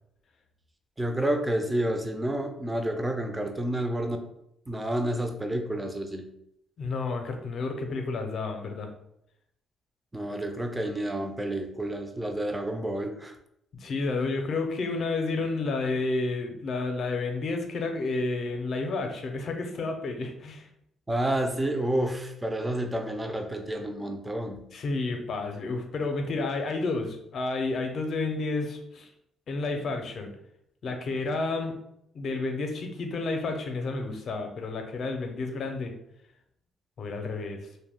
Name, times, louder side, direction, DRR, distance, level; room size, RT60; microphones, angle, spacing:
voice 1, 1.0-4.2 4.7-6.3 6.8-6.9 10.1-13.3 21.1-24.7, right 1 dB, 15° right, 6 dB, 0.4 m, -29 dB
voice 2, 6.8-8.9 13.8-20.7 24.7-29.1 29.5-30.3 30.8-31.8 32.1-36.0 37.0-37.6, left 3 dB, 55° left, 5 dB, 0.5 m, -30 dB
2.3 x 2.1 x 3.4 m, 0.76 s
cardioid pair, 90°, 0 cm